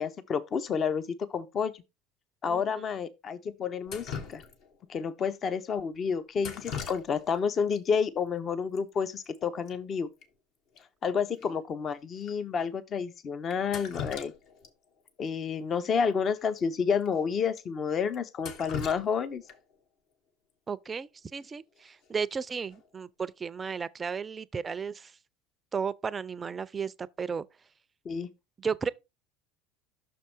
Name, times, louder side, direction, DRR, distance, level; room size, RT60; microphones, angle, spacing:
voice 1, 0.0-1.7 2.4-4.4 4.9-10.1 11.0-14.3 15.2-19.4 28.0-28.3, left 6 dB, 35° left, 0.7 m, -30 dB
Drip, 3.9-4.9 6.4-7.4 7.7-7.8 8.8-8.9 9.1-9.4 9.7-9.8 10.2-10.3 10.8-10.9 11.4-11.5 12.2-12.3 13.5-14.7 15.1-15.2 16.5-16.6 17.0-17.1 17.6-17.7 18.1-19.8 21.8-22.1 22.5-22.9, left 6 dB, 60° left, 1.4 m, -40 dB
voice 2, 20.7-25.1 25.7-27.5 28.6-28.9, right 6 dB, 25° right, 0.5 m, -34 dB
6.2 x 4.6 x 4.4 m
supercardioid pair, 105°, 0 cm